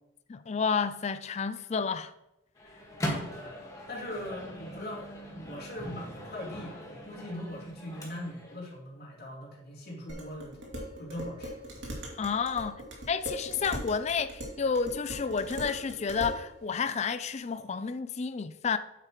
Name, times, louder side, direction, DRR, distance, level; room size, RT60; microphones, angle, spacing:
voice 1, 0.3-2.1 12.2-12.8 13.1-18.8, left 5 dB, 35° left, 0.3 m, -30 dB
Microwave oven, 2.6-8.6, equal, 15° left, 1.6 m, -40 dB
voice 2, 3.0-10.6 11.0-11.6, left 1 dB, 50° left, 3.1 m, -41 dB
Dishes pots and pans, 10.1-16.4, equal, 60° right, 2.4 m, -40 dB
9.0 x 8.0 x 3.1 m
head